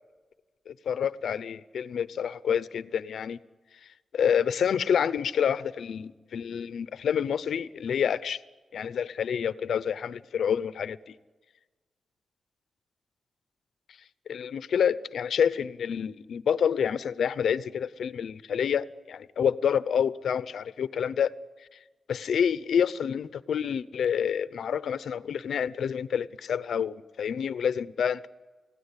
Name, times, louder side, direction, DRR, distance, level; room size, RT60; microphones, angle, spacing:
voice 1, 0.7-3.4 4.1-8.4 8.7-11.1 14.3-21.3 22.1-28.3, left 8 dB, 80° left, 0.7 m, -28 dB
29.5 x 17.0 x 9.9 m
wide cardioid pair, 175°, 0 cm